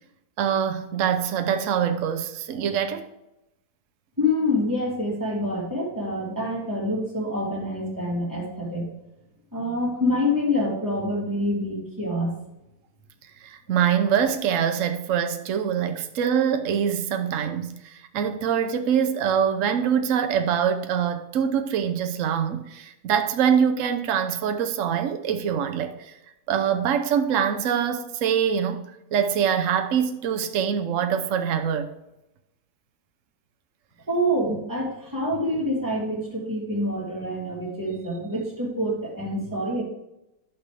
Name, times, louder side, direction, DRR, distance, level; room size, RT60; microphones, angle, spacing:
voice 1, 0.4-3.1 13.4-26.1 26.5-31.9, right 8 dB, 60° right, 1.1 m, -24 dB
voice 2, 4.2-8.9 9.5-12.3 34.1-39.8, left 1 dB, 10° right, 3.1 m, -26 dB
11.5 x 6.1 x 3.4 m
omnidirectional pair, 1.7 m